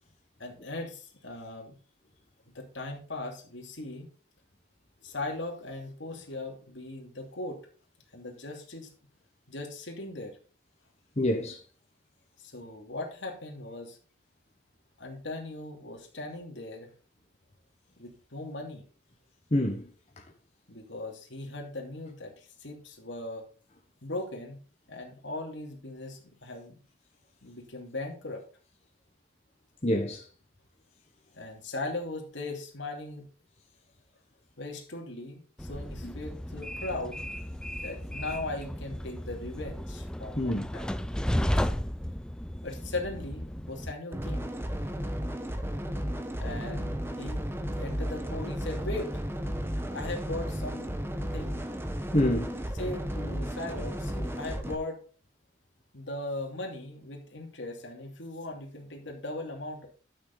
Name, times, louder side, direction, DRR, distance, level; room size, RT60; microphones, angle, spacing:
voice 1, 0.4-1.7 2.5-4.1 5.0-7.6 8.1-8.9 9.5-10.4 12.4-14.0 15.0-16.9 18.0-18.8 20.7-23.5 24.0-24.6 24.9-26.8 27.4-28.4 31.3-33.3 34.6-37.2 37.8-41.1 42.6-44.5 46.4-47.5 47.8-49.2 49.9-51.0 51.3-51.6 52.8-55.0 55.9-59.9, left 2 dB, 75° left, 2.8 m, -38 dB
voice 2, 11.2-11.6 19.5-19.9 29.8-30.2 36.0-36.1 40.4-40.7 52.1-52.6, left 1 dB, 35° left, 1.3 m, -26 dB
Train, 35.6-43.9, equal, 5° left, 0.4 m, -34 dB
sound 1, 44.1-54.7, equal, 10° right, 0.9 m, -33 dB
12.0 x 6.5 x 4.1 m
head